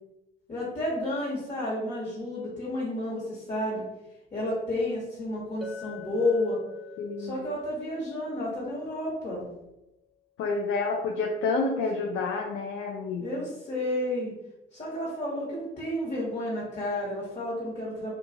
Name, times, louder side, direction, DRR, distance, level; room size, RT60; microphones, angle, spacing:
voice 1, 0.5-3.8 4.3-6.6 7.2-9.5 13.2-14.3 14.7-18.1, left 1 dB, 40° left, -7 dB, 1.1 m, -31 dB
Chink clink, 5.6-10.0, left 6 dB, ahead, 0.5 m, -47 dB
voice 2, 7.0-7.5 10.4-13.3, left 3 dB, 85° left, 1 dB, 0.4 m, -29 dB
2.8 x 2.3 x 2.6 m, 0.92 s
cardioid pair, 90°, 20 cm